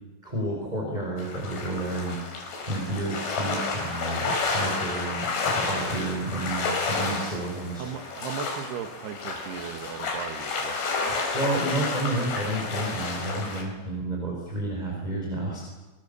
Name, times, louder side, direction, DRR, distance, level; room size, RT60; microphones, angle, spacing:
voice 1, 0.2-7.8 11.0-15.6, right 2 dB, 10° right, -1 dB, 4.8 m, -31 dB
sound 1, 1.2-13.6, left 3 dB, 70° left, 6.8 m, -30 dB
voice 2, 7.8-10.8, right 8 dB, 65° right, 7 dB, 3.2 m, -37 dB
28.0 x 24.0 x 7.0 m, 1.2 s
omnidirectional pair, 5.8 m